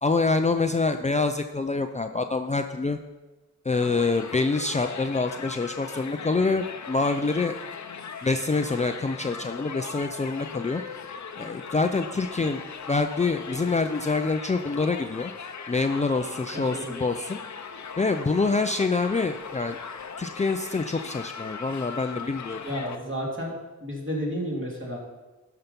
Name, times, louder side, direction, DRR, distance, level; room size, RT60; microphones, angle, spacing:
voice 1, 0.0-3.0 3.6-7.6 8.2-10.8 11.4-12.6 12.9-15.3 15.7-17.4 18.0-19.8 20.2-22.6, left 3 dB, 25° left, 6 dB, 0.5 m, -26 dB
Crowd, 3.7-23.0, left 6 dB, 65° left, 0.8 m, -39 dB
voice 2, 16.5-16.9 22.6-23.5 23.8-25.0, equal, 40° right, -3 dB, 3.0 m, -31 dB
12.5 x 5.8 x 5.3 m, 1.2 s
wide cardioid pair, 85°, 30 cm